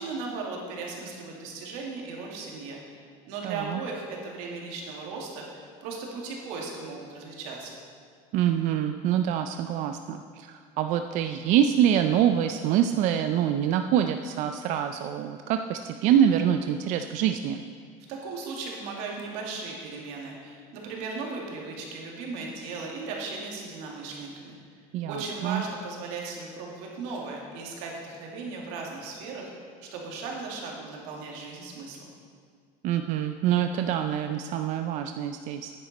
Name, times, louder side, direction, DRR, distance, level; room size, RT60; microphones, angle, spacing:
voice 1, 0.0-7.8 18.1-24.6 25.0-29.5 29.8-32.0, right 4 dB, 75° right, -1 dB, 2.2 m, -37 dB
voice 2, 3.4-3.8 8.3-17.6 24.9-25.6 32.8-35.7, right 10 dB, 45° right, 7 dB, 0.4 m, -25 dB
9.8 x 9.5 x 4.1 m, 2.1 s
cardioid pair, 155°, 17 cm